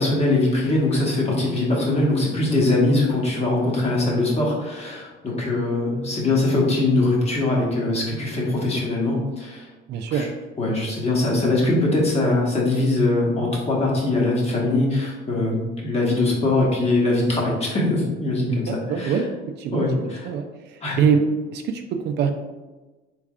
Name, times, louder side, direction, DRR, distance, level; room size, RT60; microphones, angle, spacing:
voice 1, 0.0-9.7 10.1-10.3 10.6-19.2 19.7-20.3 20.8-21.0, left 2 dB, 30° left, -3 dB, 1.1 m, -22 dB
voice 2, 9.9-10.3 18.5-19.3 19.6-21.3 21.5-22.3, right 7 dB, 55° right, 5 dB, 0.4 m, -24 dB
3.4 x 3.3 x 2.4 m, 1.2 s
supercardioid pair, 90°, 21 cm